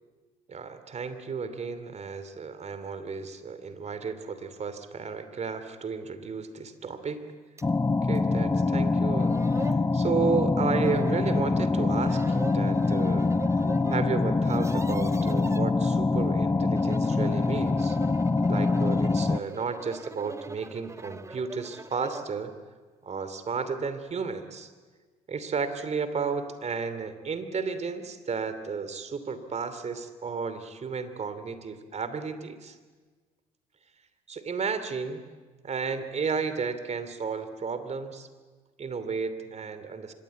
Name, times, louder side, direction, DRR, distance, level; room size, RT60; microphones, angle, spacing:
voice 1, 0.5-7.2 8.0-13.3 13.9-18.0 18.5-22.5 23.0-24.7 25.3-32.8 34.3-35.2 35.6-38.3 38.8-40.1, right 5 dB, 40° right, 11 dB, 2.8 m, -33 dB
sound 1, 7.6-19.4, left 3 dB, 15° left, 0.8 m, -25 dB
sound 2, 7.6-7.7 8.1-8.2 8.9-9.0 9.2-9.8 10.7-11.5 12.0-14.0 14.3-15.6 16.6-22.3, right 3 dB, 15° right, 1.2 m, -42 dB
25.0 x 21.5 x 8.4 m, 1.4 s
hypercardioid pair, 60°, 18 cm